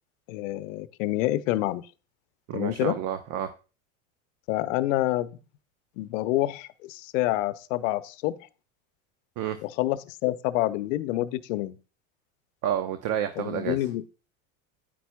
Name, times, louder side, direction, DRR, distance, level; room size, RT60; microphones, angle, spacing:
voice 1, 0.3-1.8 2.5-3.0 4.5-5.4 6.0-8.5 9.6-11.8 13.4-14.0, left 16 dB, 65° left, 14 dB, 0.8 m, -27 dB
voice 2, 2.5-3.5 9.4-9.6 12.6-13.8, right 10 dB, 50° right, 10 dB, 0.8 m, -29 dB
9.9 x 9.1 x 2.3 m, 0.33 s
hypercardioid pair, 90°, 42 cm